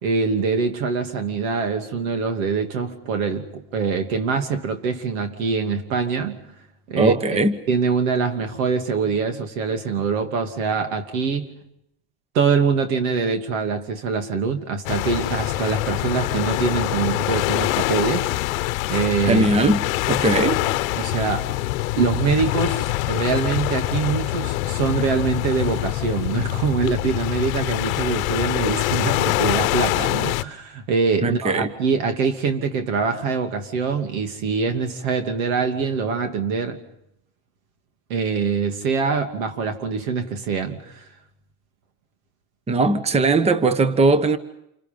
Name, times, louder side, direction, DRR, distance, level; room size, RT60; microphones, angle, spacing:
voice 1, 0.0-6.4 6.9-7.4 7.7-11.5 12.3-18.3 18.9-19.5 21.0-21.5 22.0-36.8 38.1-41.0, right 5 dB, 85° right, 2.8 m, -24 dB
voice 2, 7.0-7.6 19.2-20.6 31.2-31.7 42.7-44.4, right 2 dB, 15° right, 1.1 m, -19 dB
sound 1, 14.9-30.4, left 18 dB, 85° left, 0.9 m, -24 dB
28.5 x 26.0 x 5.4 m
supercardioid pair, 125°, 40 cm